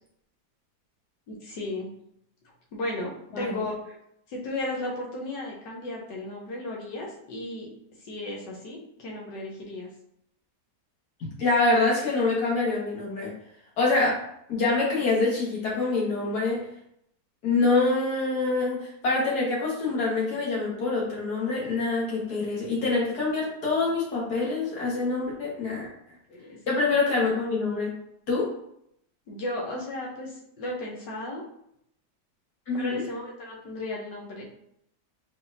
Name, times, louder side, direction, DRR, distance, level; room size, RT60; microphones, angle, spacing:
voice 1, 1.3-1.9 2.7-4.0 4.3-7.7 8.0-9.9 26.3-26.6 29.3-31.4 32.7-34.4, left 2 dB, 85° left, -2 dB, 1.7 m, -34 dB
voice 2, 11.2-13.3 13.8-14.2 14.5-16.6 17.4-25.9 26.7-27.9 28.3-28.5 32.7-33.0, left 3 dB, 65° left, -5 dB, 2.0 m, -25 dB
4.1 x 4.0 x 2.7 m, 0.74 s
omnidirectional pair, 1.8 m